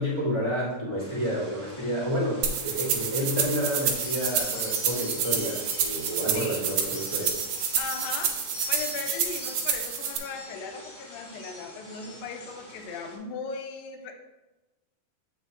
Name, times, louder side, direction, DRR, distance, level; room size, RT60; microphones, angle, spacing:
voice 1, 0.0-7.4, equal, 40° left, -8 dB, 0.4 m, -30 dB
sound 1, 1.0-13.2, equal, 30° right, 0.8 m, -48 dB
sound 2, 2.4-10.2, right 7 dB, 75° right, 2.0 m, -29 dB
sound 3, 3.2-12.6, left 2 dB, 65° left, 1.4 m, -43 dB
voice 2, 6.3-6.6 7.8-8.3 8.7-14.2, left 5 dB, 80° left, 5 dB, 2.3 m, -37 dB
7.9 x 5.6 x 3.1 m, 1.1 s
omnidirectional pair, 4.3 m